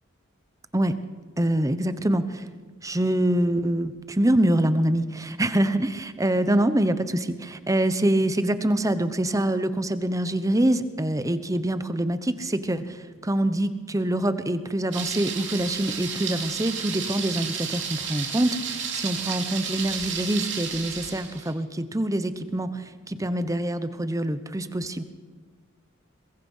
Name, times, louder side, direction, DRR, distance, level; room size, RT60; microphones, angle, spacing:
voice 1, 1.4-2.5 2.8-25.0, right 1 dB, 15° right, 12 dB, 0.9 m, -25 dB
Thunder, 14.9-21.5, right 7 dB, 65° right, 3.1 m, -32 dB
22.5 x 22.5 x 5.6 m, 1.4 s
head